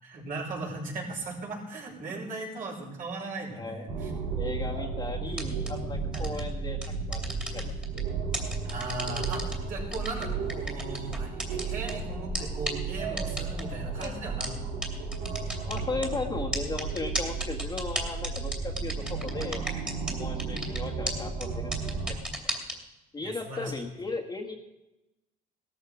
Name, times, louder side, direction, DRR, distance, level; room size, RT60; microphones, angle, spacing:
voice 1, 0.0-4.1 6.1-6.4 8.6-14.6 20.3-20.5 23.2-23.7, right 2 dB, 55° right, -2 dB, 5.9 m, -38 dB
voice 2, 3.6-3.9 4.3-6.8 7.1-7.2 7.5-7.7 14.0-14.2 15.7-19.7 20.1-22.2 23.1-24.6, left 3 dB, 25° left, 1 dB, 1.8 m, -36 dB
sound 1, 3.9-22.2, right 4 dB, 85° right, 4.5 m, -34 dB
sound 2, 5.3-5.7 6.1-6.4 6.8-8.0 8.3-9.5 9.9-11.9 12.3-12.4 12.7-12.8 13.2-13.6 14.0-14.1 14.4-14.5 14.8-14.9 15.1-16.1 16.5-20.1 20.4-20.8 21.1-21.2 21.4-21.5 21.7-22.7, right 1 dB, 5° right, 2.8 m, -33 dB
17.5 x 13.5 x 5.1 m, 0.97 s
cardioid pair, 110°, 17 cm